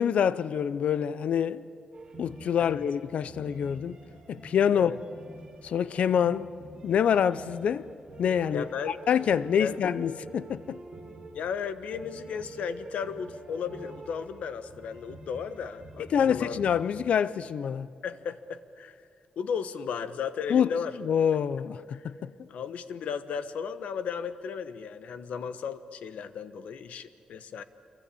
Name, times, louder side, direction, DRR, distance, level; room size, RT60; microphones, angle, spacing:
voice 1, 0.0-1.6 2.2-4.0 4.3-4.9 5.6-6.5 6.8-7.9 8.2-10.8 16.1-17.9 20.5-20.7 21.0-22.3, left 8 dB, 70° left, 0.6 m, -26 dB
Town saxo balad, 1.9-17.0, right 2 dB, 30° right, 8.0 m, -47 dB
voice 2, 8.5-9.0 9.6-9.8 11.3-16.6 18.0-19.0 19.4-20.9 21.9-22.1 22.5-27.6, left 6 dB, 90° left, 1.2 m, -35 dB
27.0 x 23.5 x 8.6 m
wide cardioid pair, 155°, 2 cm